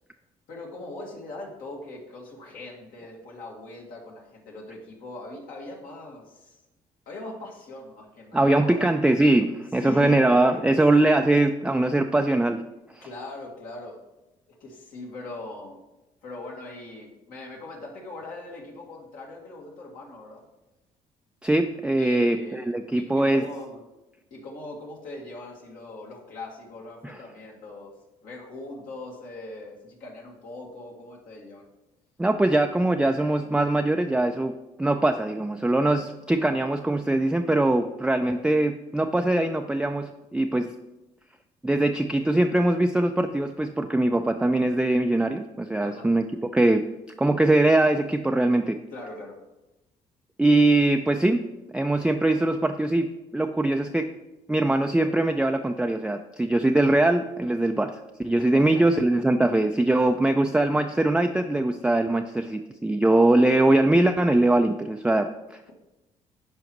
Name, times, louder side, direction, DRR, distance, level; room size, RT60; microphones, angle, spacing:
voice 1, 0.5-6.5 7.1-9.0 9.8-10.2 10.5-10.8 13.0-14.0 14.6-15.8 16.2-20.4 22.0-22.7 22.9-23.8 24.3-27.9 28.2-31.7 45.8-46.1 48.9-49.4 58.4-58.9 60.0-60.2, left 2 dB, 70° left, -2 dB, 2.0 m, -40 dB
voice 2, 8.3-12.6 21.4-23.4 27.0-27.1 32.2-34.5 34.8-40.7 41.6-46.2 46.5-46.8 47.2-48.8 50.4-51.4 51.7-54.1 54.5-57.9 58.2-65.6, right 2 dB, 5° right, 5 dB, 0.4 m, -22 dB
11.0 x 4.8 x 3.0 m, 0.98 s
supercardioid pair, 65°, 15 cm